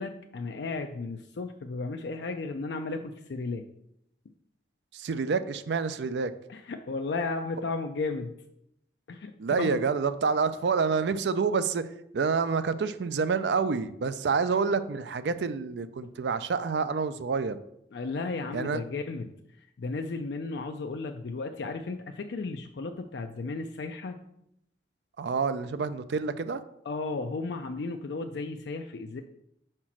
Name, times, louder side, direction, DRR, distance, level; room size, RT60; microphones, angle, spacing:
voice 1, 0.0-3.6 6.5-8.3 9.1-9.8 17.9-19.3 19.8-24.2 26.9-29.2, left 3 dB, 75° left, 5 dB, 0.4 m, -34 dB
voice 2, 4.9-6.3 9.4-11.9 12.1-17.6 18.5-18.8 25.2-26.6, right 5 dB, 75° right, 13 dB, 0.4 m, -28 dB
4.9 x 4.4 x 5.9 m, 0.78 s
head